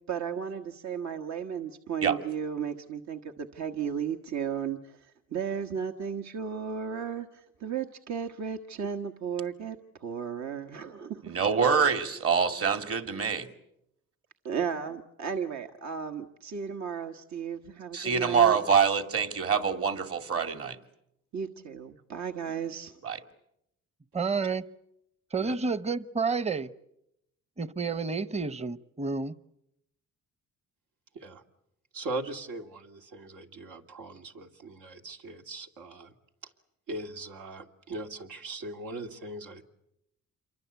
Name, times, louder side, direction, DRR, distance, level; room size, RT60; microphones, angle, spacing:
voice 1, 0.1-11.4 14.4-18.6 21.3-23.0, right 7 dB, 65° right, 5 dB, 1.5 m, -34 dB
voice 2, 11.2-13.5 17.9-20.8 23.0-23.2, right 6 dB, 50° right, 8 dB, 2.5 m, -25 dB
voice 3, 24.1-24.7 25.3-26.7 27.6-29.4, right 4 dB, 20° right, 15 dB, 1.0 m, -30 dB
voice 4, 31.9-36.1 36.9-39.6, right 2 dB, 85° right, 3 dB, 2.7 m, -40 dB
28.0 x 23.5 x 8.3 m, 0.81 s
cardioid pair, 90°, 30 cm